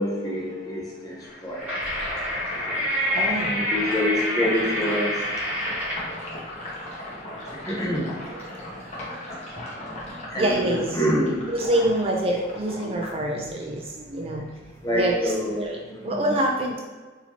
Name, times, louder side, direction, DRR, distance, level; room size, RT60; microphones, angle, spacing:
voice 1, 0.0-1.7 3.5-5.1 7.7-8.1 10.3-11.5 14.8-15.6 15.9-16.2, equal, 20° left, -3 dB, 0.7 m, -26 dB
sound 1, 1.3-6.1, left 1 dB, 10° right, 1.2 m, -27 dB
Sink (filling or washing), 1.6-13.9 14.2-15.6, left 1 dB, 35° left, 1.1 m, -38 dB
voice 2, 3.1-3.6 8.4-8.5 10.3-11.0 11.5-14.5 14.9-16.8, right 1 dB, 30° right, 0 dB, 0.4 m, -26 dB
4.0 x 2.7 x 2.8 m, 1.4 s
head